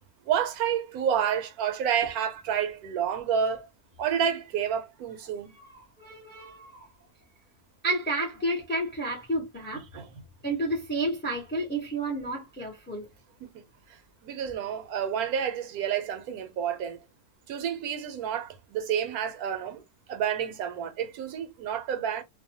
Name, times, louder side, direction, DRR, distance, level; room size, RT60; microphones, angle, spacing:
voice 1, 0.3-3.7 4.0-5.5 9.9-10.1 13.4-13.6 14.2-17.0 17.5-19.8 20.1-22.2, right 8 dB, 75° right, 1.1 m, -29 dB
voice 2, 5.5-6.9 7.8-9.8 10.4-13.1, right 1 dB, 10° left, 0.5 m, -31 dB
2.6 x 2.2 x 2.7 m
omnidirectional pair, 1.6 m